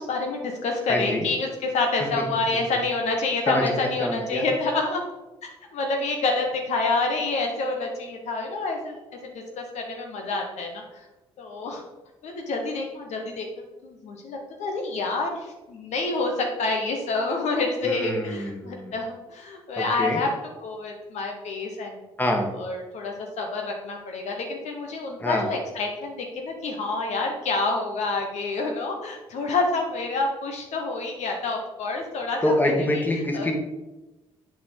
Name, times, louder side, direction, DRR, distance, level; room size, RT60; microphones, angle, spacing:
voice 1, 0.0-5.0 5.7-9.0 9.6-10.8 11.4-11.8 12.2-20.3 20.6-22.1 22.5-33.0 33.3-33.5, left 3 dB, 70° left, 2 dB, 1.0 m, -28 dB
voice 2, 0.9-1.2 3.5-3.6 4.0-4.4 17.8-18.9 19.8-20.2 22.2-22.5 25.2-25.5 32.4-33.5, left 1 dB, 15° left, 2 dB, 1.5 m, -25 dB
7.5 x 4.2 x 3.9 m, 1.1 s
hypercardioid pair, 55°, 12 cm